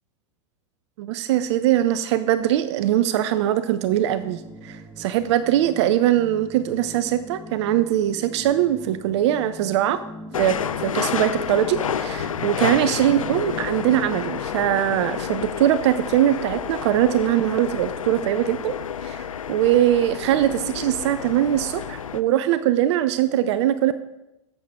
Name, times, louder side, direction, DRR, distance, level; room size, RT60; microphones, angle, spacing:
voice 1, 1.0-10.0 10.4-18.7 19.0-23.9, right 12 dB, 60° right, 14 dB, 0.5 m, -21 dB
sound 1, 3.8-14.3, equal, 10° right, 1.1 m, -41 dB
sound 2, 10.3-22.2, left 8 dB, 85° left, 0.5 m, -30 dB
13.5 x 7.4 x 3.6 m, 0.93 s
hypercardioid pair, 95°, 17 cm